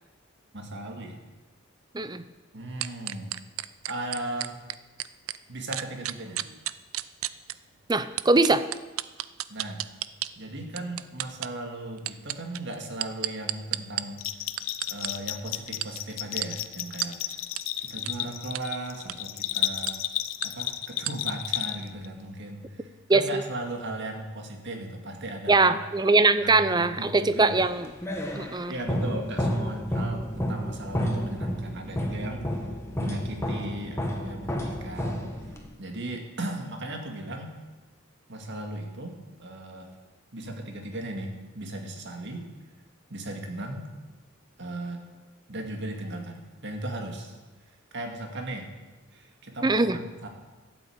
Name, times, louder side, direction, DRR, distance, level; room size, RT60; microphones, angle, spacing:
voice 1, 0.5-1.3 2.5-3.3 3.9-4.6 5.5-6.4 9.5-9.8 10.4-14.2 14.9-17.4 17.8-20.0 20.4-25.8 26.4-27.7 28.7-37.5 38.3-40.0 40.3-42.4 43.1-43.9 44.6-45.0 45.5-47.4 47.9-48.7 49.1-50.3, right 1 dB, 60° right, 3 dB, 2.1 m, -37 dB
sound 1, 2.8-5.4 5.7-7.5 8.2-10.3 10.8-11.5 12.0-14.0 14.6-15.1 15.8-15.9 16.4-16.5 17.0-17.1 17.6-17.7 18.1-18.2 18.5-18.6 19.0-19.2 19.9-20.0 20.4-20.5 21.0-21.1, right 15 dB, 80° right, 0.5 m, -31 dB
voice 2, 7.9-8.6 23.1-23.4 25.5-27.9 28.4-28.7 49.6-50.0, right 3 dB, 20° right, 13 dB, 0.6 m, -22 dB
Bell, 14.2-22.1, left 13 dB, 75° left, 0.6 m, -32 dB
sound 2, 27.6-35.7, equal, 15° left, 1.7 m, -31 dB
12.5 x 8.2 x 8.7 m, 1.2 s
head